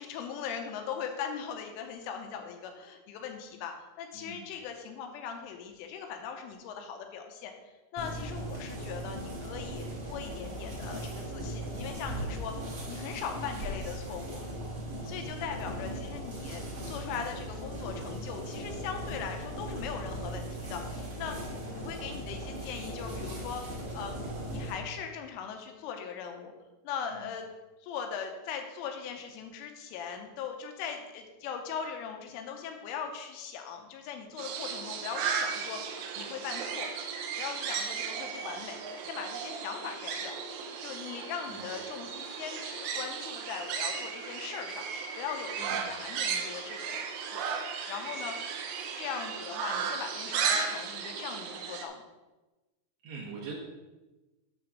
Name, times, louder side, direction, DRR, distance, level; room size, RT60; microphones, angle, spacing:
voice 1, 0.0-7.5 7.9-12.6 12.9-14.4 15.0-21.4 21.7-24.2 24.5-26.5 26.8-27.5 27.8-36.9 37.4-40.4 40.8-44.9 45.2-47.0 47.3-47.4 47.8-48.4 49.0-52.1, left 7 dB, 85° left, 4 dB, 3.1 m, -40 dB
sound 1, 8.0-24.7, right 1 dB, 50° right, 1.8 m, -38 dB
sound 2, 34.4-51.9, right 6 dB, 80° right, 3.2 m, -35 dB
voice 2, 53.0-53.5, right 5 dB, 65° right, -4 dB, 3.2 m, -43 dB
8.9 x 3.4 x 6.2 m, 1.1 s
omnidirectional pair, 6.0 m